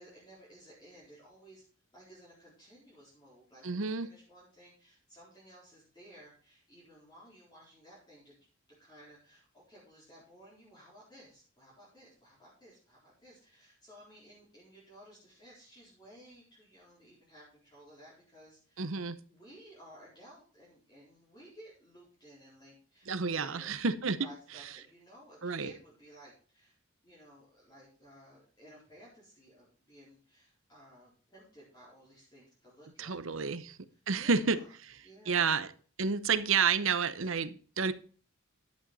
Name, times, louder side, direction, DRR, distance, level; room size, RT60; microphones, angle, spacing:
voice 1, 0.0-1.6 1.9-8.3 8.8-23.8 24.2-26.7 27.0-33.6 33.9-34.7 35.0-35.6, equal, 20° left, 4.2 m, -56 dB
voice 2, 3.6-4.1 18.8-19.2 23.1-24.2 25.4-25.7 33.0-33.8 34.1-35.0 35.3-35.7 36.0-37.9, right 5 dB, 70° right, 0.8 m, -30 dB
11.0 x 8.9 x 4.1 m
head